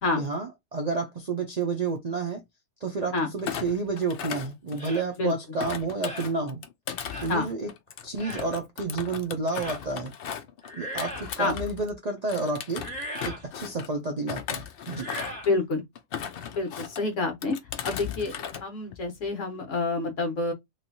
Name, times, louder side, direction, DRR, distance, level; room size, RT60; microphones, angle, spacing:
voice 1, 0.1-2.4 2.8-6.6 7.2-7.7 8.0-10.1 10.8-12.8 13.2-15.1, right 3 dB, 80° right, 0.3 m, -30 dB
Thump thud, 3.4-5.2 5.6-11.9 12.3-13.9 14.3-15.5 15.9-17.0 17.4-18.6 18.9-19.3, left 8 dB, 80° left, 0.5 m, -37 dB
sound 1, 4.8-5.1 6.0-6.3 7.1-7.3 8.2-8.5 9.5-9.8 10.6-11.4 12.7-13.4 14.9-15.5, equal, 5° left, 1.1 m, -38 dB
voice 2, 15.4-15.8 16.5-17.6 17.8-18.3 18.6-20.5, left 3 dB, 55° left, 1.3 m, -28 dB
3.2 x 3.0 x 2.7 m
omnidirectional pair, 1.6 m